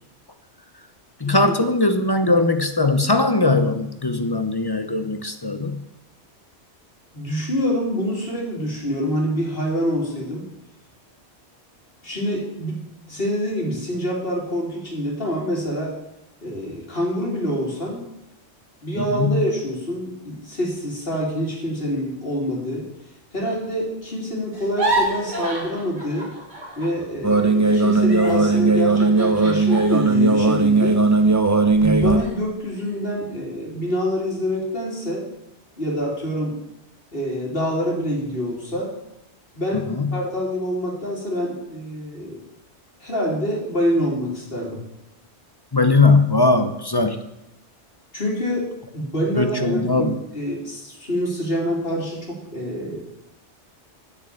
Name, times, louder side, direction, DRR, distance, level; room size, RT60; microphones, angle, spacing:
voice 1, 1.2-5.8 19.0-19.4 39.7-40.2 45.7-47.2 49.4-50.2, left 3 dB, 25° left, 8 dB, 0.8 m, -20 dB
voice 2, 7.1-10.5 12.0-12.8 13.1-16.0 16.4-18.1 18.8-22.9 23.3-26.3 26.8-31.0 31.8-35.3 35.8-36.6 37.1-38.9 39.5-42.4 43.0-44.8 48.1-53.0, equal, 50° left, -2 dB, 3.5 m, -26 dB
sound 1, 24.5-27.0 27.3-31.7 32.2-32.3 32.7-33.2, right 1 dB, 40° right, 3.2 m, -30 dB
sound 2, 27.2-32.2, right 3 dB, 20° right, 0.6 m, -17 dB
9.2 x 7.0 x 8.4 m, 0.89 s
omnidirectional pair, 1.2 m